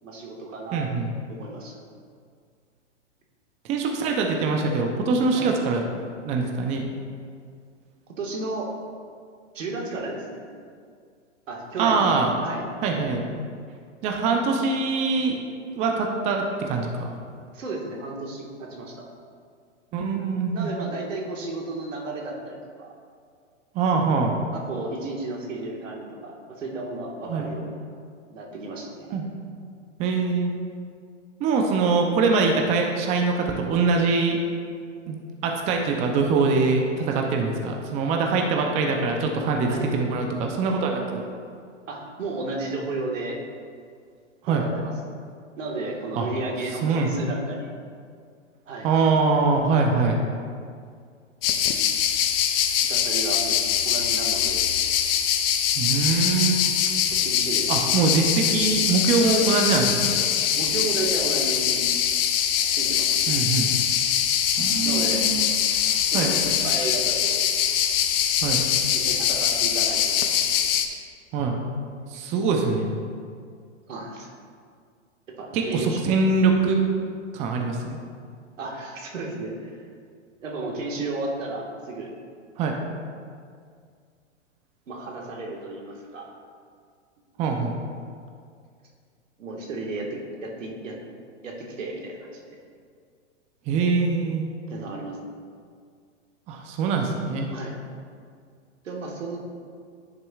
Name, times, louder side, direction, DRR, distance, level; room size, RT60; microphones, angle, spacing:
voice 1, 0.0-1.8 5.3-5.4 8.2-8.7 9.5-10.4 11.5-12.7 17.5-19.1 20.5-22.9 24.5-27.8 28.3-29.1 39.7-39.9 41.9-43.4 44.5-44.9 45.6-47.8 48.7-48.9 49.7-49.8 52.8-54.7 57.1-58.1 60.5-61.8 62.7-63.4 64.8-65.3 66.1-67.4 68.9-70.7 72.1-72.2 73.9-74.3 75.3-76.0 78.6-79.8 80.4-82.1 84.9-86.3 89.4-91.0 91.4-92.6 94.7-95.2 97.5-97.7 98.8-99.4, right 2 dB, 85° right, -1 dB, 1.6 m, -33 dB
voice 2, 0.7-1.1 3.7-5.8 6.2-6.9 11.8-12.3 12.8-13.2 14.0-15.4 15.7-17.1 19.9-20.7 23.7-24.4 27.3-27.5 29.1-29.3 30.0-30.5 31.4-34.4 35.1-41.2 44.4-44.6 46.2-46.3 46.8-47.3 48.8-50.2 55.7-56.6 57.7-60.1 63.3-63.7 64.6-65.8 66.1-66.3 68.4-68.6 71.3-71.6 72.1-72.9 75.5-76.8 77.3-78.0 82.6-82.8 87.4-87.7 93.7-94.5 96.5-97.5, right 4 dB, 20° right, 2 dB, 0.5 m, -23 dB
sound 1, 51.4-70.9, left 9 dB, 50° left, 0.6 m, -23 dB
10.5 x 6.6 x 2.4 m, 2.2 s
hypercardioid pair, 130°, 37 cm